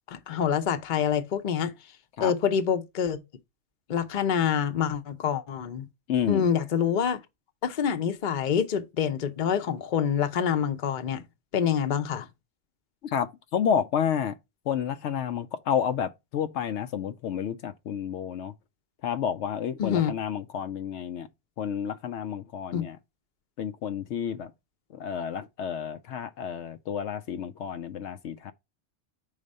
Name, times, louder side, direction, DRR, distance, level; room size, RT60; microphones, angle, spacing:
voice 1, 0.1-1.7 2.2-3.2 3.9-5.9 6.2-7.2 7.6-11.2 11.5-12.3 19.8-20.1 22.7-22.9, left 8 dB, 45° left, 0.8 m, -26 dB
voice 2, 6.1-6.5 13.0-14.3 14.7-18.5 19.0-21.3 21.6-23.0 23.6-24.5 24.9-28.5, left 8 dB, 80° left, 0.9 m, -30 dB
5.0 x 4.0 x 5.4 m
omnidirectional pair, 1.2 m